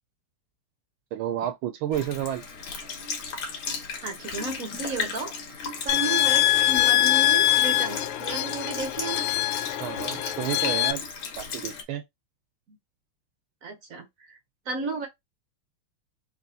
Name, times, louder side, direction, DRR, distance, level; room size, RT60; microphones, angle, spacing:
voice 1, 1.1-2.4 9.8-11.0 11.4-12.0, right 11 dB, 80° right, 1.4 m, -30 dB
Sink (filling or washing) / Liquid, 1.9-11.8, left 5 dB, 75° left, 2.0 m, -36 dB
voice 2, 4.0-5.6 5.8-9.3 12.7-12.8 13.6-14.4 14.7-15.1, right 3 dB, 55° right, 0.9 m, -33 dB
sound 1, 5.9-10.9, left 15 dB, 90° left, 1.5 m, -23 dB
4.5 x 3.1 x 2.7 m
omnidirectional pair, 2.3 m